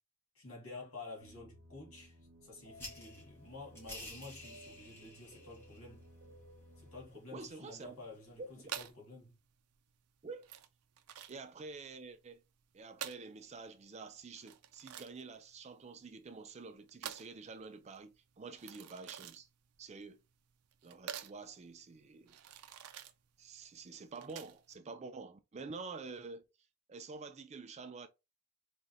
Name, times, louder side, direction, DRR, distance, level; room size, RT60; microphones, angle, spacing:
voice 1, 0.4-6.0 6.8-9.3, left 3 dB, 65° left, 2.0 m, -51 dB
sound 1, 1.2-7.0, equal, 65° right, 1.4 m, -58 dB
sound 2, 2.7-8.9, left 1 dB, 10° left, 1.6 m, -54 dB
voice 2, 7.3-8.0 8.4-8.7 10.2-10.5 11.3-12.4 12.7-19.5 19.8-20.2 20.8-22.4 23.4-26.4 26.9-28.1, right 4 dB, 30° right, 0.4 m, -48 dB
sound 3, 8.6-24.8, right 9 dB, 90° right, 0.5 m, -49 dB
3.7 x 3.5 x 2.7 m
head